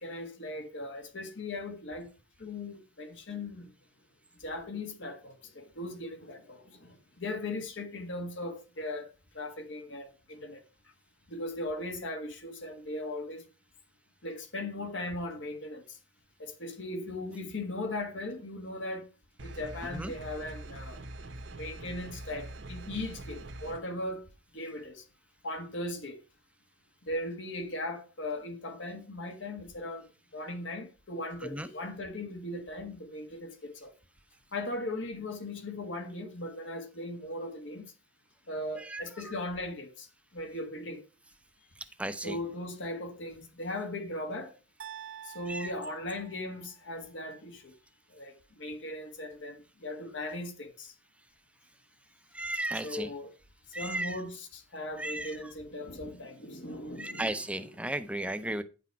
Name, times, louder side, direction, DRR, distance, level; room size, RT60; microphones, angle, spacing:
voice 1, 0.0-2.1 2.4-3.7 4.4-9.1 9.3-10.6 11.3-13.4 14.2-16.0 16.4-19.0 19.4-21.0 21.5-24.2 24.5-25.0 25.4-26.2 27.0-30.1 30.3-33.9 34.5-37.9 38.5-40.1 40.3-41.0 42.2-44.5 45.2-47.7 48.1-50.9 52.8-53.3 53.7-57.7 58.6-58.7, left 1 dB, 70° left, 1.5 m, -38 dB
sound 1, 19.4-23.8, right 1 dB, 65° right, 1.1 m, -44 dB
voice 2, 38.8-39.3 42.0-42.4 45.5-45.7 52.3-53.1 53.7-54.2 55.0-55.4 57.0-58.6, right 1 dB, 5° right, 0.5 m, -35 dB
sound 2, 44.8-46.9, right 9 dB, 80° right, 0.7 m, -47 dB
9.4 x 6.0 x 4.6 m
head